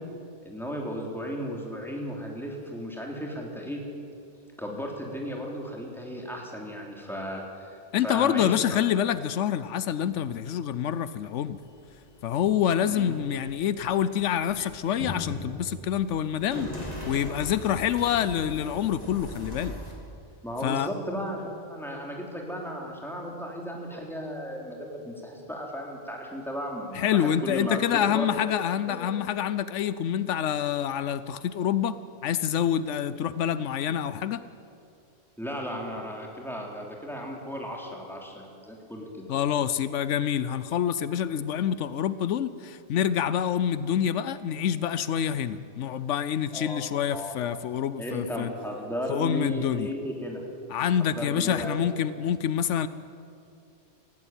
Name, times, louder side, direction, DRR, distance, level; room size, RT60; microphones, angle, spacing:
voice 1, 0.4-3.8 4.6-8.8 12.8-13.1 20.4-28.3 28.9-29.1 35.4-39.2 46.5-46.8 47.1-47.4 48.0-50.4 51.0-51.7, equal, ahead, -1 dB, 3.2 m, -35 dB
voice 2, 7.9-11.6 12.2-19.8 20.6-20.9 26.9-32.0 32.2-34.4 39.3-48.5 49.1-49.9 50.7-52.9, left 9 dB, 85° left, 14 dB, 1.0 m, -27 dB
sound 1, 11.6-19.9, left 1 dB, 35° left, 3.7 m, -39 dB
18.5 x 15.5 x 9.0 m, 2.5 s
omnidirectional pair, 1.2 m